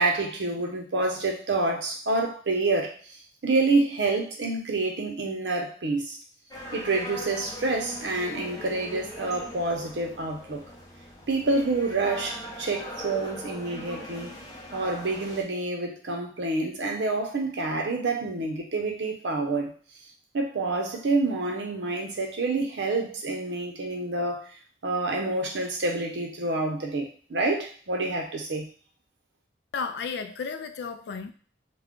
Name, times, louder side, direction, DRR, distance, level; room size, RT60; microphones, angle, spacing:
voice 1, 0.0-2.9 3.4-6.2 6.7-10.6 11.3-14.3 14.7-19.7 20.3-24.5 24.8-28.7, right 3 dB, 85° right, 1 dB, 0.6 m, -27 dB
sound 1, 6.5-15.4, equal, 20° left, 0.5 m, -41 dB
voice 2, 29.7-31.3, left 5 dB, 75° left, 9 dB, 0.3 m, -33 dB
2.3 x 2.1 x 3.6 m, 0.43 s
head